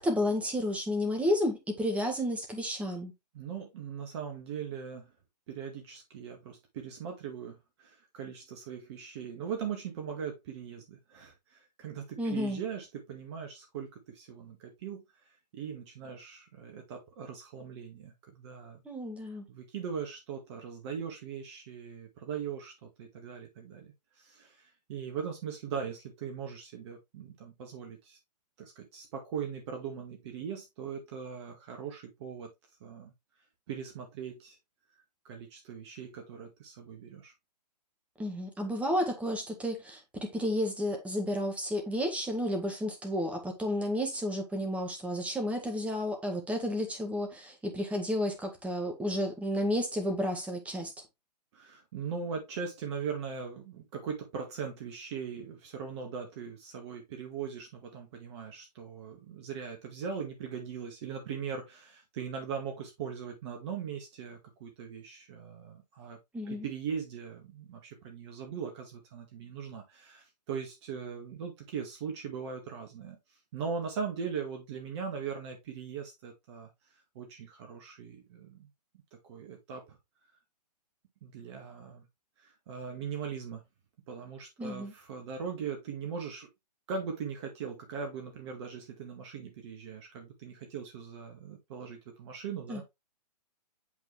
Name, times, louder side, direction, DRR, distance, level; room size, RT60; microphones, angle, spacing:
voice 1, 0.0-3.1 12.2-12.6 18.8-19.4 38.2-50.9 66.3-66.7 84.6-84.9 92.7-92.8, equal, 5° right, 1.7 m, -31 dB
voice 2, 3.3-5.1 5.5-15.0 15.5-18.8 19.5-22.7 23.0-23.9 24.2-28.2 28.6-32.5 32.8-33.1 33.7-34.6 35.2-37.3 51.5-66.2 66.5-73.2 73.5-76.7 77.2-78.7 79.3-80.0 81.2-82.0 82.4-83.6 84.1-86.5 86.9-92.8, right 6 dB, 40° right, 1.9 m, -40 dB
8.3 x 3.9 x 3.3 m
figure-of-eight pair, 125°, 21 cm